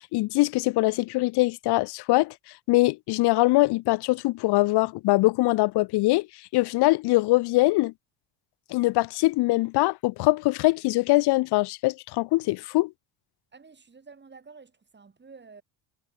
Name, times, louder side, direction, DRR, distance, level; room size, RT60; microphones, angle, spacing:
voice 1, 0.1-2.3 2.7-6.3 6.5-7.9 8.7-12.9, left 20 dB, 55° left, 0.6 m, -22 dB
voice 2, 13.5-15.6, right 5 dB, 20° right, 5.3 m, -50 dB
cardioid pair, 115°, 48 cm